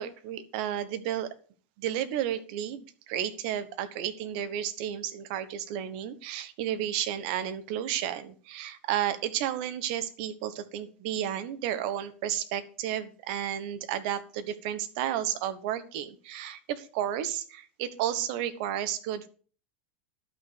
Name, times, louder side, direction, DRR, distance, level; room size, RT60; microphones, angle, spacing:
voice 1, 0.0-1.3 1.8-19.3, right 11 dB, 55° right, 11 dB, 1.3 m, -32 dB
11.5 x 6.2 x 6.6 m, 0.41 s
figure-of-eight pair, 90°, 6 cm